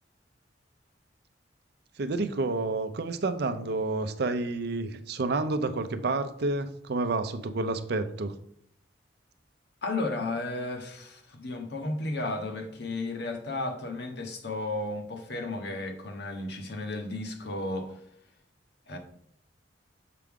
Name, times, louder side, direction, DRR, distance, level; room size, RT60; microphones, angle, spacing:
voice 1, 2.0-8.3, right 3 dB, 60° right, 0.5 m, -29 dB
voice 2, 9.8-18.0 18.9-19.0, left 2 dB, 65° left, 1.1 m, -33 dB
6.7 x 4.8 x 3.6 m
head